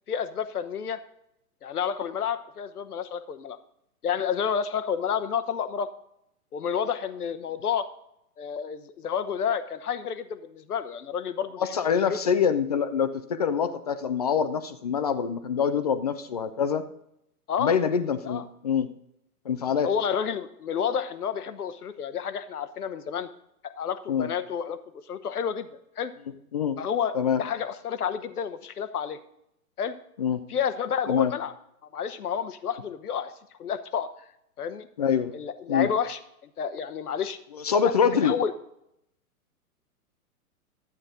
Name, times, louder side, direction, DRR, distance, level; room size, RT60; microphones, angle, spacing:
voice 1, 0.1-1.0 1.6-3.6 4.0-5.9 6.5-7.9 8.4-11.7 12.1-12.2 17.5-17.8 18.2-18.4 19.8-23.3 23.6-25.7 26.0-26.1 26.8-29.2 29.8-29.9 30.5-31.5 31.9-33.3 33.6-34.1 34.6-34.9 35.3-37.4 37.8-38.5, left 7 dB, 75° left, 12 dB, 0.9 m, -30 dB
voice 2, 11.6-16.8 17.6-18.9 19.5-19.9 24.1-24.3 26.5-26.8 27.1-27.4 30.2-30.4 31.1-31.3 35.0-35.3 35.7-35.9 37.5-38.4, left 7 dB, 30° left, 11 dB, 0.4 m, -25 dB
12.0 x 8.6 x 3.7 m, 0.77 s
figure-of-eight pair, 120°, 45 cm